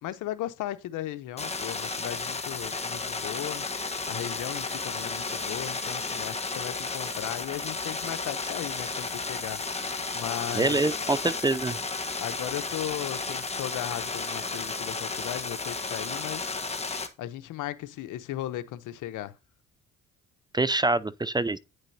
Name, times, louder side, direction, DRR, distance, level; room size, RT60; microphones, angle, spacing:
voice 1, 0.0-3.7 4.1-9.6 10.1-10.8 12.2-16.6 17.2-19.4, left 13 dB, 85° left, 0.9 m, -36 dB
sound 1, 1.4-17.1, left 4 dB, 20° left, 1.2 m, -33 dB
voice 2, 10.5-11.8 20.5-21.6, right 2 dB, 15° right, 0.4 m, -25 dB
9.3 x 6.6 x 2.8 m
cardioid pair, 90°, 30 cm